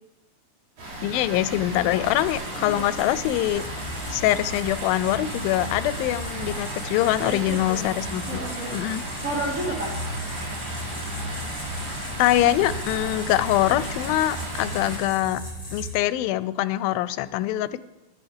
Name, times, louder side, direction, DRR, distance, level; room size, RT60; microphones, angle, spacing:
Water, 0.8-15.0, right 1 dB, 75° right, 5.6 m, -35 dB
voice 1, 1.0-3.7 4.1-8.4 8.7-9.0 12.2-15.4 15.7-17.8, left 14 dB, 90° left, 16 dB, 2.3 m, -24 dB
sound 1, 1.5-15.9, equal, 15° left, 3.1 m, -37 dB
voice 2, 2.6-3.0 7.1-7.9 8.3-8.8 9.2-9.9, right 1 dB, 50° right, -4 dB, 0.9 m, -32 dB
16.5 x 12.0 x 3.5 m, 1.0 s
omnidirectional pair, 4.1 m